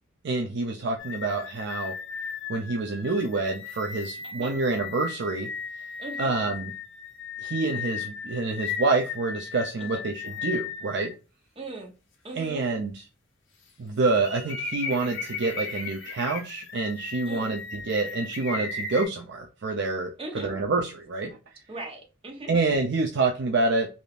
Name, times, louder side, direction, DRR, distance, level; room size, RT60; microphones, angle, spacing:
voice 1, 0.2-1.9 2.5-5.5 5.7-5.9 6.2-6.7 7.4-11.1 12.3-12.9 13.8-21.4 22.5-23.9, right 3 dB, 60° right, 0.5 m, -27 dB
sound 1, 1.0-11.1 11.7-11.8 14.2-19.1, left 5 dB, 75° left, 1.0 m, -36 dB
voice 2, 4.2-4.6 6.0-6.4 9.8-10.0 11.6-12.0 12.2-12.7 17.3-17.6 20.2-20.5 21.7-22.5, right 2 dB, 30° right, 0.8 m, -39 dB
3.5 x 2.5 x 2.3 m
head